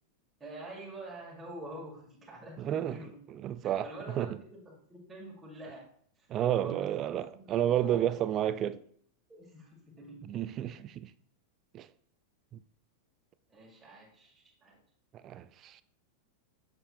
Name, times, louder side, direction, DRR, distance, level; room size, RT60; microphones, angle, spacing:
voice 1, 0.4-3.2 3.6-5.9 6.2-6.3 6.6-6.9 7.3-8.6 9.3-10.2 13.5-14.8, right 1 dB, 10° right, 1.8 m, -47 dB
voice 2, 2.6-3.0 3.3-4.4 6.3-8.8 10.2-11.1 11.7-11.9 15.2-15.8, right 11 dB, 30° right, 0.3 m, -31 dB
7.6 x 6.0 x 2.3 m
figure-of-eight pair, 90°, 0 cm